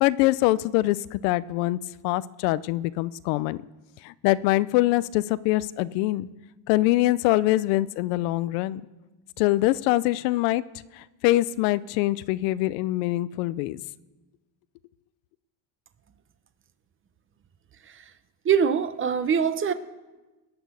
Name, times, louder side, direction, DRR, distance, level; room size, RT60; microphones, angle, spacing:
voice 1, 0.0-1.8 2.0-3.6 4.0-6.3 6.7-8.8 9.4-10.6 10.9-13.8, left 17 dB, 85° left, 18 dB, 0.6 m, -24 dB
voice 2, 18.4-19.7, right 7 dB, 25° right, 12 dB, 0.7 m, -23 dB
18.0 x 6.1 x 8.3 m, 1.1 s
cardioid pair, 125°, 48 cm